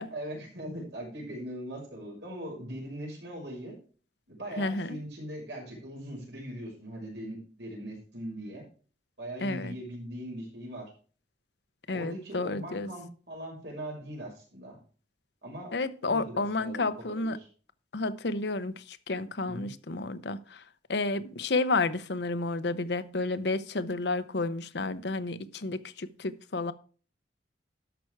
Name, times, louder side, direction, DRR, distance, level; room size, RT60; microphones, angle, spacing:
voice 1, 0.1-3.8 4.3-8.6 9.2-10.8 11.9-14.8 15.4-15.7 16.0-17.5 19.5-19.7, right 1 dB, 80° right, 6.1 m, -40 dB
voice 2, 4.6-5.0 9.4-9.7 11.9-12.9 15.7-17.4 17.9-20.6 20.9-26.7, left 3 dB, 75° left, 0.8 m, -31 dB
13.0 x 6.1 x 4.6 m
head